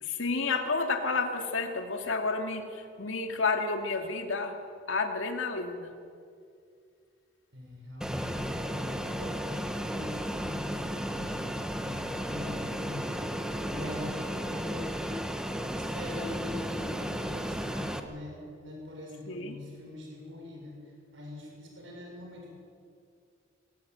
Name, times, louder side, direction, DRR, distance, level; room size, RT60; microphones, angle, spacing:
voice 1, 0.0-4.6 4.9-5.9 19.3-19.6, left 4 dB, 85° left, 4 dB, 2.4 m, -30 dB
voice 2, 7.5-22.6, left 1 dB, 80° right, -1 dB, 6.7 m, -43 dB
Fixed-wing aircraft airplane, 8.0-18.0, equal, 5° right, 1.2 m, -34 dB
22.0 x 17.0 x 9.3 m, 2.4 s
head